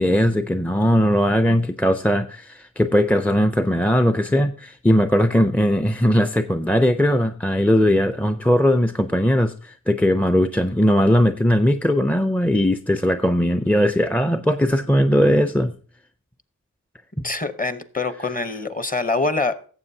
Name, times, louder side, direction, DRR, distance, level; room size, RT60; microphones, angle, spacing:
voice 1, 0.0-15.7, equal, 5° left, 9 dB, 0.4 m, -19 dB
voice 2, 17.2-19.7, left 3 dB, 25° left, 11 dB, 0.8 m, -25 dB
17.5 x 7.6 x 2.7 m, 0.43 s
wide cardioid pair, 85°, 35 cm